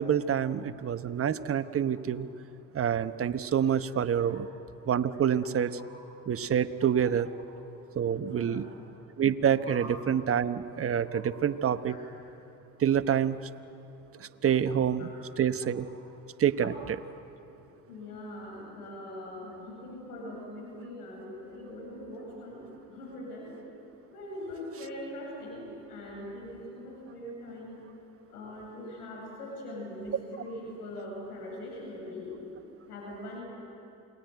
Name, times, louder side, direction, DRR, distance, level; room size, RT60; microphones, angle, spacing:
voice 1, 0.0-2.3 2.7-4.5 4.9-5.8 6.3-7.3 7.9-8.7 9.2-12.0 12.8-13.4 14.2-15.1 15.4-15.9 16.4-16.7, right 8 dB, 30° right, 10 dB, 1.1 m, -27 dB
voice 2, 8.2-8.7 9.7-9.8 11.0-11.2 11.9-12.0 14.6-14.7 15.0-15.1 15.6-15.7 17.9-23.5 24.1-27.7 28.3-32.3 32.9-33.4, left 1 dB, 85° left, -2 dB, 8.0 m, -42 dB
28.0 x 19.5 x 9.3 m, 2.9 s
hypercardioid pair, 75°, 45 cm